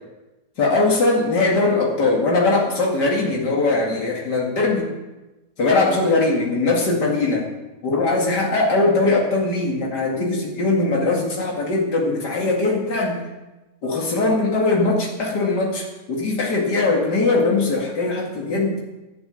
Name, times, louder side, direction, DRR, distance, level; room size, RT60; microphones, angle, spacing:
voice 1, 0.6-4.9 5.6-7.4 7.8-13.2 13.8-18.8, left 3 dB, 90° left, -2 dB, 2.8 m, -20 dB
12.0 x 8.3 x 9.0 m, 1.1 s
omnidirectional pair, 1.7 m